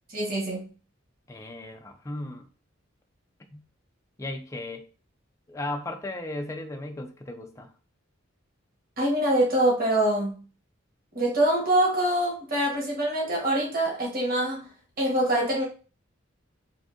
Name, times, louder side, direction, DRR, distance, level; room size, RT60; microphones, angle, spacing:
voice 1, 0.1-0.6 9.0-10.3 11.1-14.7 15.0-15.6, right 1 dB, 45° right, 1.2 m, -24 dB
voice 2, 1.3-2.5 3.5-3.6 4.2-4.9 5.5-7.7, left 2 dB, 15° left, 0.4 m, -36 dB
3.5 x 2.6 x 2.5 m
head